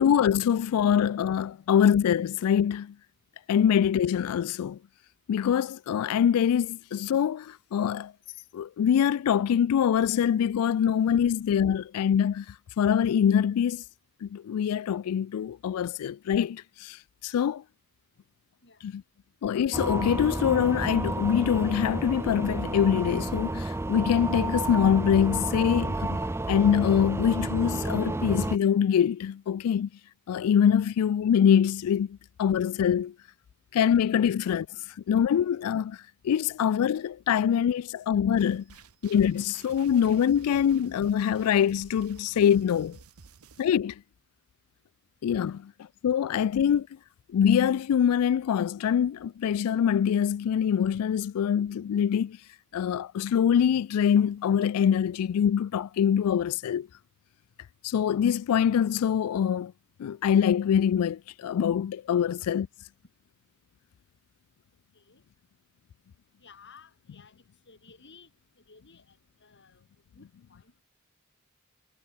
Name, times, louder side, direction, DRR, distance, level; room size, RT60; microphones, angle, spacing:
voice 1, 0.0-2.9 3.5-4.8 5.3-8.1 8.5-12.5 12.8-13.8 14.2-17.0 17.2-17.6 18.8-19.0 19.4-26.2 26.5-29.9 30.3-33.1 33.7-34.7 35.1-36.0 36.2-38.6 39.0-43.0 43.6-43.9 45.2-45.7 46.0-46.9 47.3-52.4 52.7-56.9 57.8-59.7 60.0-62.7, left 8 dB, 90° left, 0.3 m, -24 dB
sound 1, 19.7-28.6, right 2 dB, 10° right, 0.4 m, -31 dB
sound 2, 38.4-43.7, right 5 dB, 80° right, 0.9 m, -52 dB
voice 2, 66.4-68.3 68.7-69.8 70.2-70.8, left 5 dB, 55° left, 6.4 m, -56 dB
head